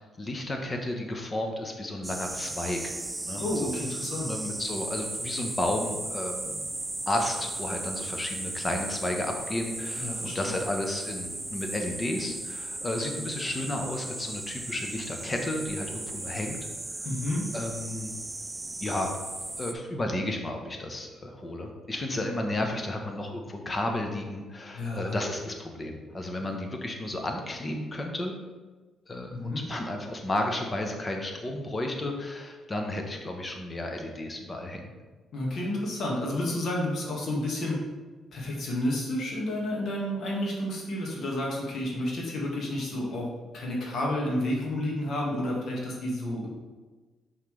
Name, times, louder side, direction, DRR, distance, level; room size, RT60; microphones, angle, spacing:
voice 1, 0.2-2.9 3.2-3.8 4.3-6.7 7.1-16.6 17.5-18.2 18.8-19.1 19.6-28.3 29.1-34.9, left 1 dB, 25° left, 3 dB, 1.0 m, -32 dB
sound 1, 2.0-19.7, right 2 dB, 15° right, 0.4 m, -36 dB
voice 2, 3.4-4.3 10.0-10.5 17.0-17.5 24.7-25.2 29.3-29.6 35.3-37.8 38.3-43.3 43.5-46.5, left 1 dB, 60° left, -3 dB, 1.8 m, -30 dB
5.7 x 5.6 x 3.3 m, 1.3 s
cardioid pair, 90°, 0 cm